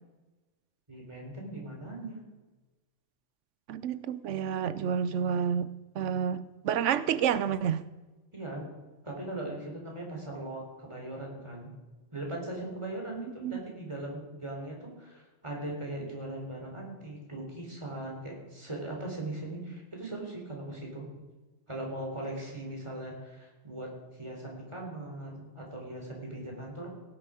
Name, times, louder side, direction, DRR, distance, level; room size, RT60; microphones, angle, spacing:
voice 1, 0.9-2.2 8.3-8.6 9.0-11.7 12.1-21.1 21.7-26.9, right 1 dB, 25° right, 0 dB, 3.7 m, -39 dB
voice 2, 3.7-5.7 5.9-7.8 13.4-13.6, right 8 dB, 90° right, 15 dB, 1.0 m, -29 dB
17.0 x 10.0 x 5.0 m, 1.2 s
omnidirectional pair, 1.2 m